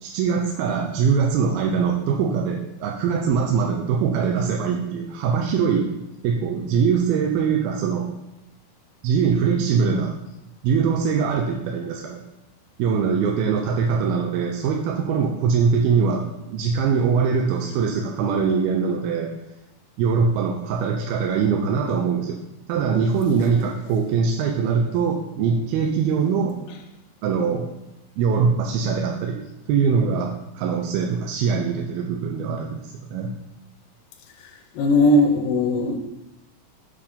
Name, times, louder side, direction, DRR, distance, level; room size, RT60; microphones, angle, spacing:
voice 1, 0.0-5.9 6.2-8.1 9.0-10.1 10.6-12.2 12.8-19.3 20.0-22.4 22.7-26.6 27.2-27.7 28.2-29.4 29.7-33.3, right 6 dB, 80° right, 1 dB, 2.5 m, -22 dB
voice 2, 34.8-36.0, left 1 dB, 75° left, 4 dB, 2.5 m, -18 dB
7.3 x 4.7 x 5.2 m, 0.95 s
omnidirectional pair, 4.6 m